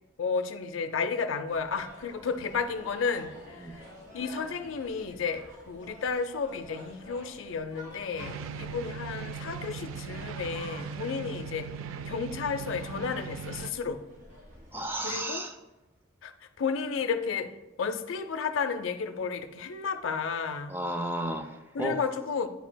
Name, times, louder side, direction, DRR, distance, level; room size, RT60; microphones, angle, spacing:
voice 1, 0.2-3.8 4.1-11.7 12.1-14.0 15.0-15.5 16.2-17.5 17.8-20.7 21.7-22.5, left 5 dB, 75° left, 9 dB, 0.5 m, -32 dB
sound 1, 1.5-15.0, equal, 40° right, 1.9 m, -50 dB
sound 2, 8.2-13.7, right 6 dB, 80° right, 0.3 m, -39 dB
voice 2, 14.7-15.6 20.7-22.0, right 1 dB, 10° right, 5 dB, 0.4 m, -33 dB
9.2 x 4.6 x 2.2 m, 1.1 s
head